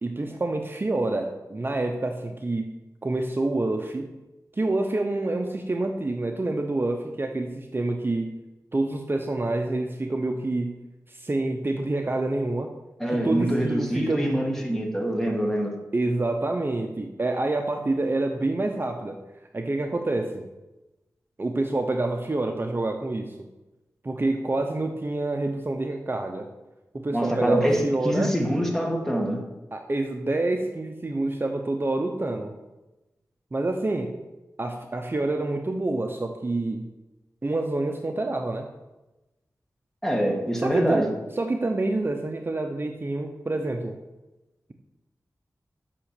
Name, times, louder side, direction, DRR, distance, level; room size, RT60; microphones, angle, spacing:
voice 1, 0.0-2.7 3.0-4.1 4.6-8.3 8.7-10.7 11.1-12.7 13.1-14.4 15.9-19.2 19.5-20.4 21.4-23.3 24.0-26.5 26.9-28.3 29.7-32.5 33.5-34.1 34.6-36.9 37.4-38.7 40.6-44.0, right 2 dB, 35° right, 4 dB, 0.8 m, -27 dB
voice 2, 13.0-15.7 27.1-29.4 40.0-41.0, right 1 dB, 5° left, 1 dB, 1.9 m, -25 dB
8.8 x 6.3 x 6.7 m, 1.0 s
wide cardioid pair, 100°, 6 cm